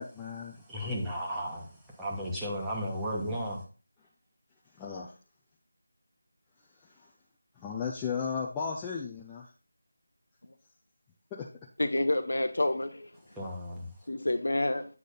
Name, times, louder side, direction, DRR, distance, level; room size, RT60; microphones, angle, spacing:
voice 1, 0.0-0.6 4.7-5.1 6.8-7.1 7.5-9.5 11.3-11.5, left 6 dB, 10° left, -4 dB, 0.6 m, -35 dB
voice 2, 0.7-1.7 2.0-3.6 13.4-13.9, equal, 5° right, -5 dB, 1.3 m, -34 dB
voice 3, 11.8-13.1 14.1-14.8, left 1 dB, 65° left, 9 dB, 0.9 m, -28 dB
8.4 x 5.0 x 4.0 m, 0.37 s
figure-of-eight pair, 165°, 0 cm